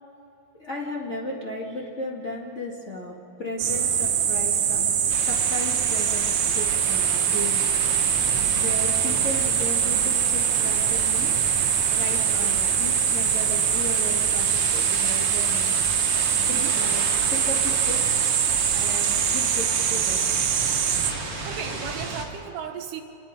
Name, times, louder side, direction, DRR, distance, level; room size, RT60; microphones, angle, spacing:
voice 1, 0.5-7.6 8.5-11.3 11.9-15.8 16.4-18.3 18.7-20.3, left 1 dB, 45° left, -3 dB, 0.9 m, -35 dB
sound 1, 3.6-21.1, right 8 dB, 65° right, 1.9 m, -23 dB
sound 2, 5.1-22.2, right 3 dB, 35° right, 2.3 m, -34 dB
voice 2, 16.1-16.7 21.1-23.0, right 7 dB, 90° right, 3 dB, 3.4 m, -37 dB
28.0 x 21.5 x 5.1 m, 2.7 s
omnidirectional pair, 4.7 m